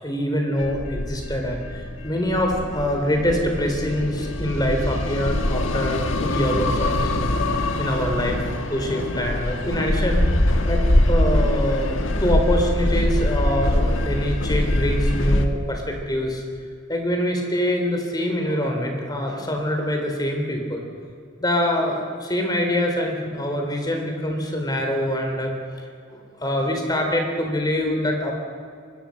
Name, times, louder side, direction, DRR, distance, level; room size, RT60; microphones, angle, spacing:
voice 1, 0.0-8.4 8.7-10.3 10.7-16.4 16.9-20.8 21.4-28.3, equal, 20° left, 2 dB, 4.0 m, -25 dB
sound 1, 0.6-15.5, left 1 dB, 80° left, 1.5 m, -23 dB
24.5 x 20.5 x 6.7 m, 2.2 s
head